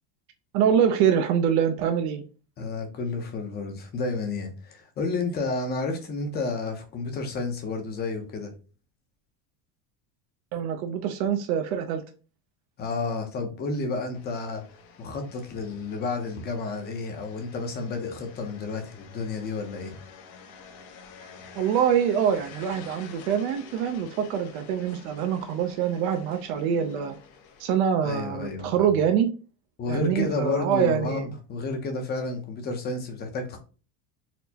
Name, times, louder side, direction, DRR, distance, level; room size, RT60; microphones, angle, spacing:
voice 1, 0.5-2.2 10.5-12.0 21.6-27.2 27.6-29.3 29.9-31.3, right 8 dB, 75° right, 0.6 m, -25 dB
voice 2, 2.6-8.5 12.8-14.6 15.0-20.0 28.0-28.9 29.8-33.6, left 3 dB, 25° left, 0.5 m, -31 dB
sound 1, 14.1-27.7, left 6 dB, 80° left, 0.9 m, -49 dB
4.3 x 2.0 x 2.7 m
cardioid pair, 155°, 42 cm